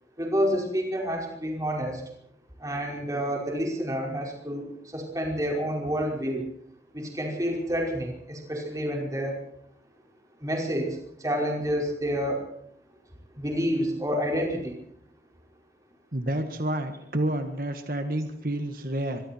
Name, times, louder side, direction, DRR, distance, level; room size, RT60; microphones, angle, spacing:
voice 1, 0.2-2.0 2.6-4.7 4.9-6.4 6.9-9.3 10.4-11.0 11.2-12.4 13.4-14.8, equal, 20° right, 0 dB, 5.3 m, -28 dB
voice 2, 16.1-19.2, right 1 dB, 50° right, 7 dB, 1.7 m, -29 dB
24.5 x 23.5 x 4.6 m, 0.71 s
head